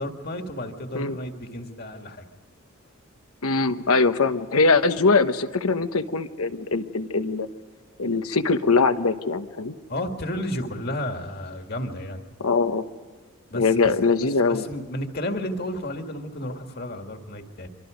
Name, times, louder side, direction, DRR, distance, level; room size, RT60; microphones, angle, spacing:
voice 1, 0.0-2.3 9.9-12.2 13.5-13.9 14.4-17.7, left 1 dB, 45° left, 4 dB, 2.2 m, -32 dB
voice 2, 3.4-7.5 8.0-9.7 12.4-12.9 13.5-14.6, left 4 dB, 80° left, 9 dB, 1.2 m, -22 dB
25.5 x 25.5 x 5.2 m, 1.4 s
head